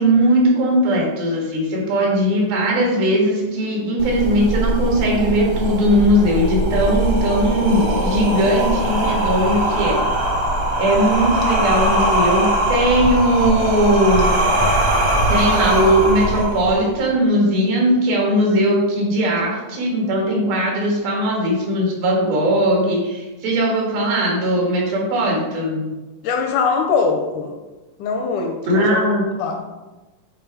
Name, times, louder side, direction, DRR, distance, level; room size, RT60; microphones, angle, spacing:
voice 1, 0.0-10.0 10.8-14.5 15.3-25.9 28.7-29.3, equal, 85° right, -2 dB, 3.6 m, -19 dB
sound 1, 4.0-17.0, right 1 dB, 60° right, 1.2 m, -20 dB
voice 2, 26.2-27.6 28.0-29.0 29.4-29.7, left 5 dB, 80° left, 4 dB, 1.9 m, -22 dB
8.1 x 4.1 x 4.5 m, 1.1 s
omnidirectional pair, 4.1 m